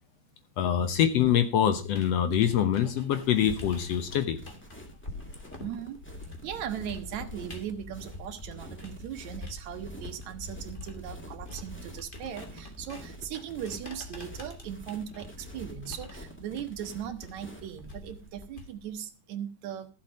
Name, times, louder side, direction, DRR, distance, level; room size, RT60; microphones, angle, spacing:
voice 1, 0.6-4.4, left 9 dB, 65° left, 9 dB, 1.9 m, -25 dB
sound 1, 1.7-9.1 9.4-19.0, left 2 dB, 25° left, 1.3 m, -46 dB
sound 2, 3.1-18.5, equal, 10° left, 0.8 m, -46 dB
voice 2, 5.6-6.0 6.4-19.9, right 9 dB, 70° right, 9 dB, 2.2 m, -38 dB
14.0 x 7.5 x 5.1 m, 0.33 s
omnidirectional pair, 3.4 m